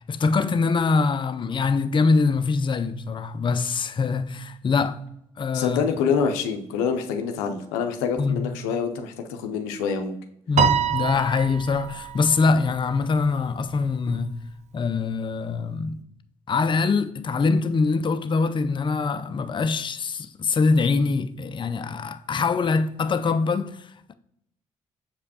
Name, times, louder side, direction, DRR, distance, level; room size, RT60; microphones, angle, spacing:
voice 1, 0.1-5.1 5.4-5.8 8.2-8.6 10.5-14.4 14.7-16.0 16.5-24.1, left 4 dB, 35° left, 0.5 m, -24 dB
voice 2, 5.5-10.2, left 6 dB, 90° left, 0.5 m, -26 dB
Piano, 10.6-13.1, right 8 dB, 50° right, 0.6 m, -25 dB
6.8 x 5.0 x 2.8 m
hypercardioid pair, 50°, 15 cm